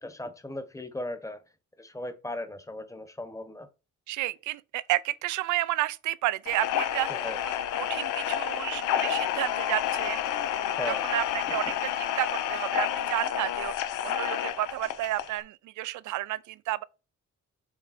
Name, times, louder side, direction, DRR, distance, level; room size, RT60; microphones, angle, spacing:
voice 1, 0.0-1.4 1.8-3.7 7.1-7.4 10.8-11.0 11.5-11.6, left 1 dB, 10° left, 1.0 m, -37 dB
voice 2, 4.1-10.2 10.9-16.8, right 16 dB, 75° right, 0.5 m, -31 dB
sound 1, 6.5-15.4, left 10 dB, 90° left, 0.7 m, -30 dB
6.3 x 3.6 x 4.2 m
cardioid pair, 90°, 30 cm